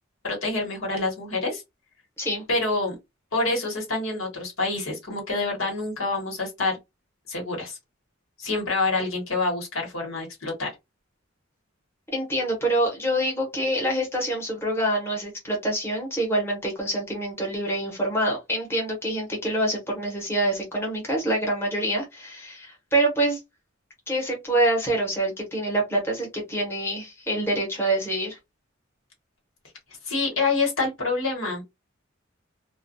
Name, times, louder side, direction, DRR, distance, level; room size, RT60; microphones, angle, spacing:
voice 1, 0.2-1.6 2.5-2.9 3.3-6.8 7.3-7.8 8.4-10.7 30.1-31.6, left 3 dB, 80° left, 1.2 m, -27 dB
voice 2, 12.1-23.4 24.1-28.4, right 1 dB, 10° left, 0.9 m, -26 dB
2.3 x 2.2 x 2.5 m
head